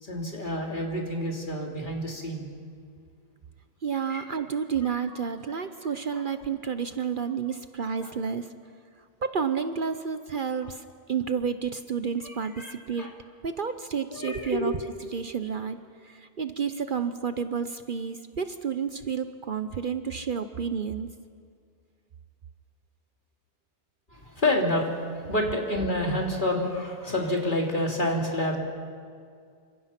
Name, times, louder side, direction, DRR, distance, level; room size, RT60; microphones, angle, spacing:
voice 1, 0.0-2.5 4.1-4.3 5.1-5.2 5.5-5.6 6.1-6.2 8.0-8.1 10.6-10.7 12.2-13.1 14.1-14.8 24.1-28.6, left 1 dB, 45° left, -1 dB, 3.6 m, -29 dB
voice 2, 3.8-8.5 9.2-13.1 13.4-14.7 15.1-15.8 16.0-21.1, right 6 dB, 50° right, 10 dB, 0.9 m, -30 dB
28.5 x 25.0 x 5.9 m, 2.2 s
omnidirectional pair, 1.1 m